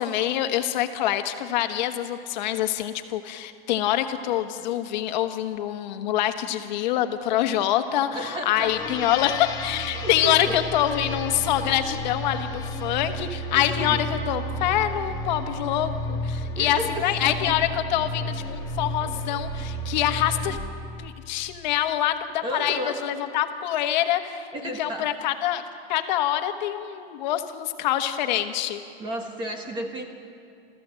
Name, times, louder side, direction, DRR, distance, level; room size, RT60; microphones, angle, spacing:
voice 1, 0.0-20.6 21.0-25.6 25.9-28.8, left 12 dB, 45° left, 7 dB, 1.4 m, -25 dB
voice 2, 8.1-9.1 9.9-10.7 13.5-14.0 16.6-17.5 22.4-23.0 24.5-25.1 29.0-30.0, right 1 dB, 15° right, 4 dB, 1.3 m, -33 dB
sound 1, 8.5-20.6, left 1 dB, 10° left, 1.3 m, -32 dB
29.5 x 14.5 x 7.6 m, 2.4 s
supercardioid pair, 170°, 31 cm